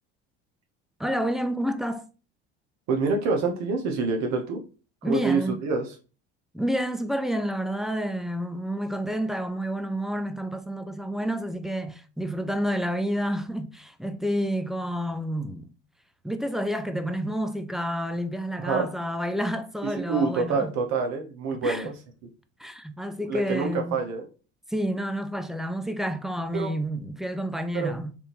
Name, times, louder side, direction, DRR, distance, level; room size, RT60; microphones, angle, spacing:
voice 1, 1.0-2.1 5.0-5.6 6.5-15.7 16.2-20.7 21.6-21.9 22.6-24.0 24.7-28.2, equal, ahead, 0.3 m, -29 dB
voice 2, 2.9-4.6 5.0-5.9 18.6-18.9 20.0-21.9 23.3-24.3 26.5-26.7 27.7-27.9, right 4 dB, 60° right, 0.9 m, -26 dB
3.6 x 2.6 x 2.9 m
hypercardioid pair, 80°, 31 cm